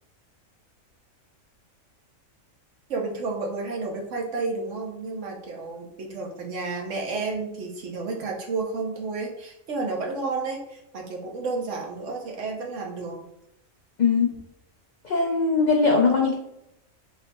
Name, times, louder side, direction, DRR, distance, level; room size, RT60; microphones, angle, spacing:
voice 1, 2.9-13.2, right 3 dB, 65° right, 0 dB, 1.1 m, -31 dB
voice 2, 15.0-16.3, left 4 dB, 75° left, -1 dB, 0.4 m, -20 dB
3.9 x 3.7 x 2.2 m, 0.81 s
omnidirectional pair, 1.4 m